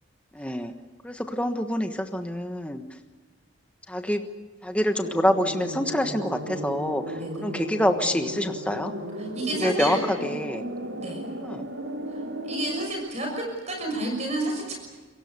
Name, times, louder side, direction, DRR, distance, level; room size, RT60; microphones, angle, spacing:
voice 1, 0.3-0.7 1.0-2.8 3.9-4.2 4.6-8.9 9.6-10.0 10.2-10.6 10.9-11.0 11.4-11.7, left 1 dB, 5° left, 5 dB, 1.3 m, -26 dB
sound 1, 5.0-12.9, right 1 dB, 70° right, 2.9 m, -35 dB
voice 2, 9.1-10.0 11.0-11.2 12.1-14.7, right 1 dB, 35° right, 1 dB, 6.3 m, -31 dB
28.5 x 23.5 x 6.8 m, 1.3 s
head